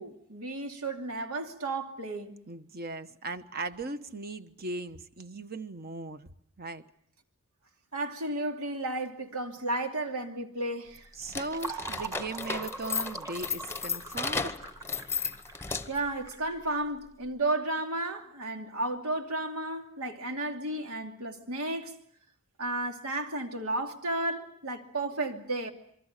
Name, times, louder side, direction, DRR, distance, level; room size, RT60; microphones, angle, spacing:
voice 1, 0.0-2.4 7.9-11.1 15.9-22.0 22.6-25.7, right 2 dB, 80° right, 2.7 m, -33 dB
voice 2, 2.5-6.3 6.6-6.8 11.2-14.6, right 2 dB, 45° right, 1.2 m, -38 dB
Fill (with liquid), 10.9-17.3, right 3 dB, 15° right, 1.4 m, -42 dB
sound 1, 11.3-16.1, left 5 dB, 10° left, 0.9 m, -34 dB
27.0 x 23.5 x 6.7 m
head